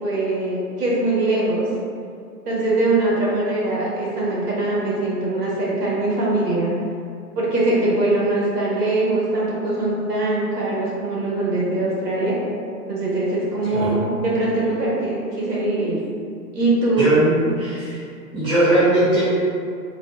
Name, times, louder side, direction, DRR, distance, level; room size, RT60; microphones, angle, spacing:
voice 1, 0.0-1.7 2.5-6.7 7.4-12.4 12.9-16.0 16.5-17.1, right 2 dB, 70° right, -6 dB, 1.2 m, -22 dB
voice 2, 17.0-18.0 18.3-19.2, right 1 dB, 10° right, -15 dB, 1.1 m, -19 dB
3.8 x 2.0 x 2.3 m, 2.3 s
hypercardioid pair, 135°, 48 cm